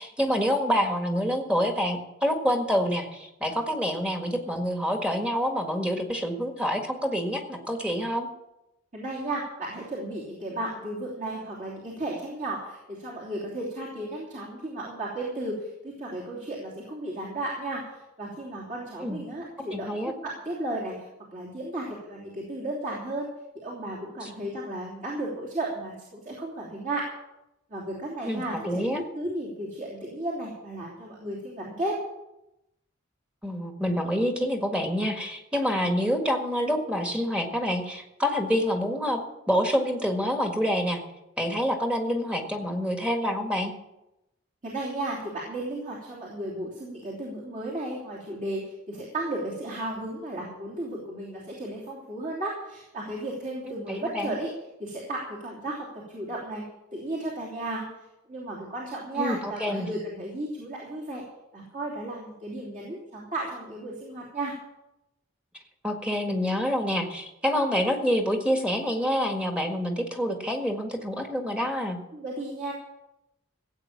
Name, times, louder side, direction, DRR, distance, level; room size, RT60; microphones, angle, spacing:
voice 1, 0.0-8.3 19.0-19.2 19.7-20.1 24.2-24.3 28.3-29.0 33.4-39.2 39.5-41.0 41.4-43.7 53.6-54.3 59.2-59.9 65.8-72.0, equal, 5° right, 3 dB, 1.7 m, -27 dB
voice 2, 8.9-23.3 23.5-27.0 27.7-32.0 44.6-54.5 54.8-56.6 56.9-57.8 58.3-61.2 61.5-64.5 72.1-72.7, right 1 dB, 40° right, -5 dB, 3.0 m, -34 dB
16.0 x 8.7 x 7.3 m, 0.91 s
head